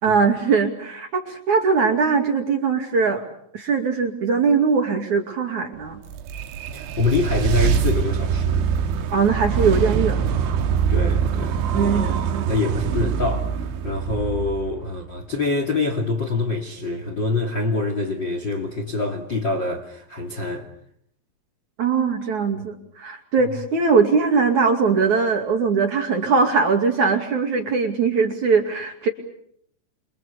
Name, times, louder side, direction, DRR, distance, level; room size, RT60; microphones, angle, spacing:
voice 1, 0.0-3.2 3.5-6.0 9.1-10.2 11.7-12.5 21.8-29.1, right 5 dB, 45° right, 3.2 m, -21 dB
sound 1, 5.9-15.2, right 7 dB, 80° right, 4.0 m, -23 dB
voice 2, 6.7-8.7 10.9-20.7 22.5-22.6, left 3 dB, 30° left, 2.3 m, -26 dB
29.0 x 25.5 x 7.0 m
omnidirectional pair, 5.6 m